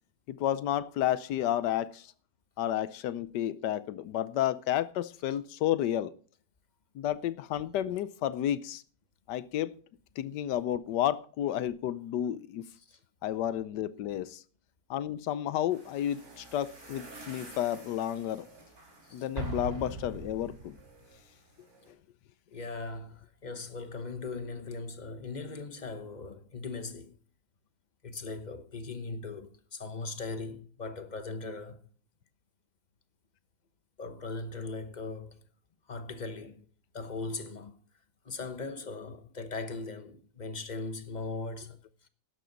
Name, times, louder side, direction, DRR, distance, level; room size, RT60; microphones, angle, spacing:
voice 1, 0.3-2.1 2.6-6.1 6.9-8.8 9.3-9.7 10.2-12.7 13.2-14.4 14.9-18.5 19.1-20.8 21.9-22.0, left 11 dB, 75° left, 1.3 m, -31 dB
sound 1, 15.7-21.9, right 2 dB, 60° right, 4.0 m, -52 dB
Explosion, 19.4-21.0, right 2 dB, 35° right, 3.1 m, -38 dB
voice 2, 22.5-27.2 28.0-31.8 34.0-35.4 35.9-36.6 36.9-37.8 38.2-41.8, left 3 dB, 35° left, 0.8 m, -39 dB
12.5 x 11.0 x 3.9 m
omnidirectional pair, 1.9 m